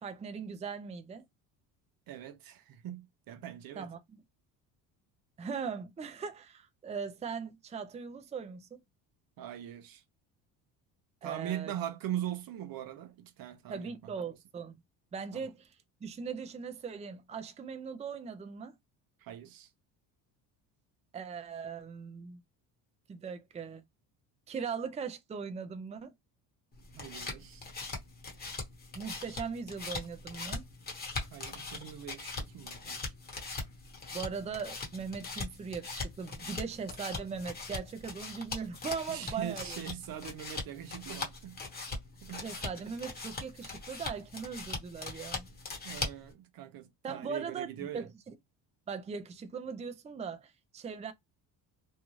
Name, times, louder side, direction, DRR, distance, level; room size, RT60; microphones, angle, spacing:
voice 1, 0.0-1.2 3.8-4.0 5.4-8.7 11.2-11.7 13.7-14.8 15.1-15.7 16.0-18.7 21.1-22.4 23.1-23.8 24.5-26.1 28.9-30.6 34.1-39.8 42.3-45.5 47.0-47.7 47.9-48.3 48.9-51.1, right 6 dB, 15° right, 0.5 m, -39 dB
voice 2, 2.1-3.9 9.4-10.0 11.2-13.9 15.3-15.5 19.2-19.7 26.9-27.6 31.3-33.1 39.1-41.6 42.2-42.5 45.8-48.1, right 11 dB, 60° right, 0.6 m, -41 dB
sound 1, 26.7-46.3, left 3 dB, 25° left, 1.0 m, -41 dB
2.7 x 2.2 x 3.0 m
cardioid pair, 105°, 40 cm